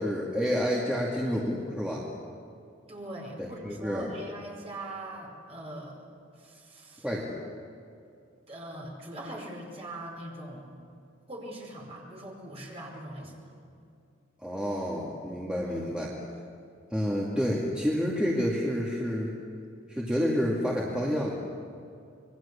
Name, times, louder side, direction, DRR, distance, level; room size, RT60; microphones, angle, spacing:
voice 1, 0.0-2.1 3.4-4.1 7.0-7.4 14.4-16.2 16.9-19.3 19.9-21.3, equal, 5° right, -5 dB, 2.2 m, -29 dB
voice 2, 2.9-6.0 6.3-7.1 8.5-10.8 11.3-13.4, right 1 dB, 30° right, -1 dB, 5.2 m, -41 dB
27.0 x 22.0 x 7.1 m, 2.5 s
head